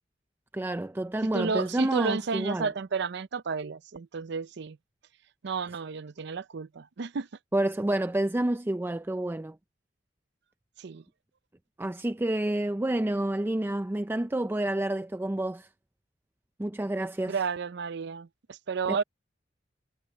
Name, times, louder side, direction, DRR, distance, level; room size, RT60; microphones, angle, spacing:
voice 1, 0.5-2.7 7.5-9.6 11.8-15.7 16.6-17.3 18.9-19.0, right 1 dB, 10° right, 0.4 m, -29 dB
voice 2, 1.3-4.8 5.4-7.3 10.8-11.0 17.3-19.0, right 5 dB, 65° right, 0.5 m, -32 dB
head